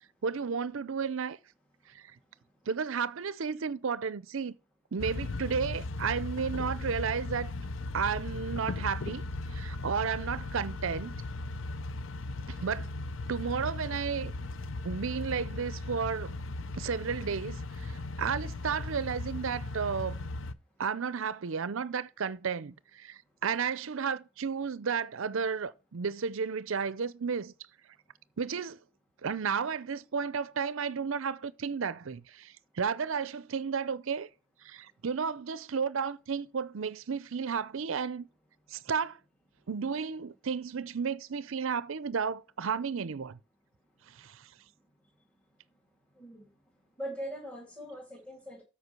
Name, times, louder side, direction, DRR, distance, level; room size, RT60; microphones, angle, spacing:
voice 1, 0.2-1.4 1.9-2.0 2.7-4.6 4.9-7.5 7.9-11.1 12.5-12.9 13.3-14.3 14.8-16.3 16.7-20.3 20.8-27.5 28.4-28.8 29.2-34.3 34.6-38.3 38.7-39.2 39.7-43.4 44.1-44.5, right 6 dB, 65° right, 0.5 m, -33 dB
sound 1, 5.0-20.5, left 2 dB, 60° left, 0.6 m, -37 dB
voice 2, 47.0-48.6, equal, 5° left, 2.2 m, -41 dB
8.1 x 5.2 x 6.7 m
head